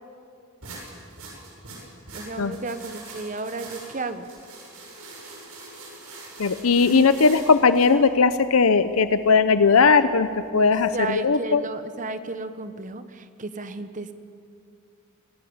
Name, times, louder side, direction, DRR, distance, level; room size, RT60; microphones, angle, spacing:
sound 1, 0.6-7.9, right 3 dB, 90° right, 7.0 m, -43 dB
voice 1, 2.1-4.3 10.5-14.1, right 3 dB, 35° right, 10 dB, 1.1 m, -33 dB
voice 2, 6.4-11.6, left 4 dB, 80° left, 12 dB, 0.7 m, -18 dB
26.0 x 17.0 x 8.8 m, 2.4 s
head